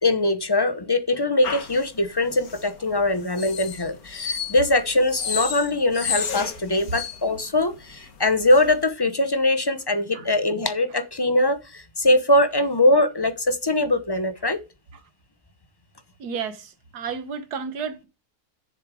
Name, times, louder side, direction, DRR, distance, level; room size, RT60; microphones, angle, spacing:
voice 1, 0.0-14.6, left 1 dB, 25° left, 0.5 m, -22 dB
sound 1, 1.4-8.8, left 6 dB, 65° left, 1.7 m, -32 dB
voice 2, 16.2-18.1, right 6 dB, 75° right, 1.7 m, -32 dB
7.2 x 6.9 x 4.8 m
omnidirectional pair, 1.7 m